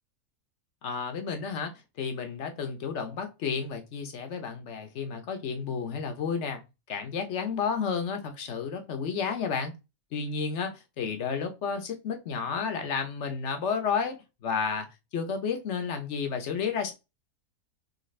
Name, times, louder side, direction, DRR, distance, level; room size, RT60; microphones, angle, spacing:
voice 1, 0.8-1.7 2.0-6.6 6.9-9.7 10.1-14.9 15.1-16.9, left 6 dB, 55° left, 1.0 m, -31 dB
4.1 x 3.3 x 3.2 m
omnidirectional pair, 1.5 m